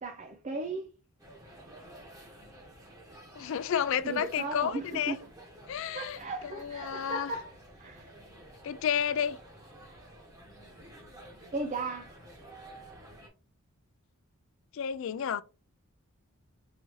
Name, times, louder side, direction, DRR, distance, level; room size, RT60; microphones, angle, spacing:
voice 1, 0.0-0.9 4.0-5.2 5.9-7.5 7.8-8.1 11.5-12.2, right 3 dB, 30° right, 0.4 m, -36 dB
sound 1, 1.2-13.3, right 1 dB, 15° right, 1.2 m, -52 dB
voice 2, 3.4-5.1 5.7-7.3 8.6-9.4 14.7-15.4, left 8 dB, 60° left, 0.3 m, -31 dB
4.9 x 2.7 x 3.1 m
head